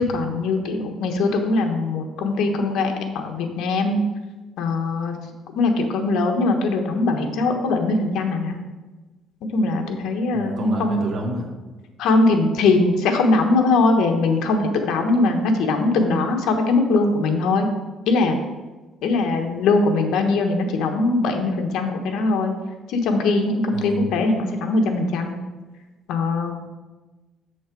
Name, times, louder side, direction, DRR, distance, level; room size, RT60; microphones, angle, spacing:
voice 1, 0.0-4.0 4.6-5.1 5.5-8.6 9.5-11.0 12.0-17.7 18.1-18.4 19.0-22.5 22.9-25.3 26.1-26.5, left 3 dB, 75° left, 4 dB, 1.1 m, -21 dB
voice 2, 10.3-11.5 23.7-24.1, right 1 dB, 50° right, 0 dB, 1.2 m, -29 dB
6.9 x 6.3 x 4.6 m, 1.2 s
cardioid pair, 155°, 0 cm